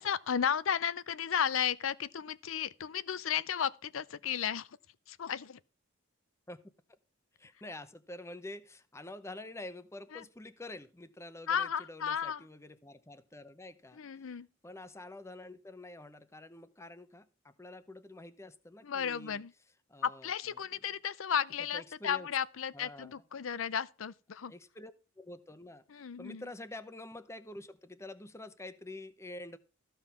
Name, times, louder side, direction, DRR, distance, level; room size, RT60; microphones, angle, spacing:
voice 1, 0.0-4.8 5.1-5.6 10.1-10.2 11.5-12.4 13.9-14.5 18.8-19.5 20.0-24.5 25.9-26.4, left 8 dB, 80° left, 0.6 m, -34 dB
voice 2, 7.4-19.4 19.9-20.3 21.7-22.3 22.7-23.2 24.5-29.6, left 2 dB, 15° left, 0.7 m, -47 dB
14.0 x 5.7 x 5.8 m
head